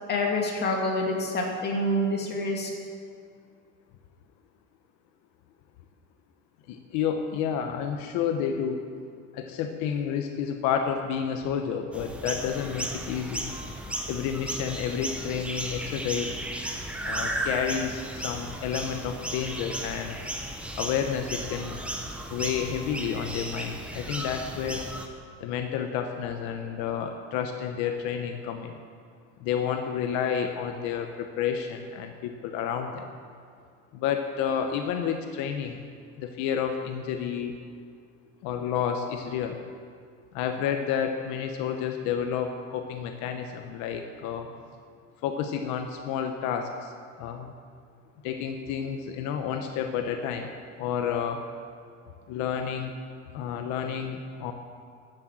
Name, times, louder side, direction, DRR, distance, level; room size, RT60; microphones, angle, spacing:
voice 1, 0.1-2.7, left 1 dB, 35° left, -1 dB, 2.5 m, -27 dB
voice 2, 6.7-8.9 9.3-13.4 14.1-16.4 17.0-20.2 20.8-21.7 22.3-24.8 25.4-28.7 29.4-33.1 33.9-35.8 36.2-37.6 38.4-39.6 40.3-44.5 45.2-46.9 47.2-47.5 48.2-50.5 50.8-51.5 52.3-52.9 53.3-54.5, left 8 dB, 85° left, 5 dB, 1.1 m, -30 dB
sound 1, 11.9-25.1, right 1 dB, 5° right, 1.0 m, -35 dB
12.0 x 9.0 x 7.5 m, 2.2 s
cardioid pair, 150°, 29 cm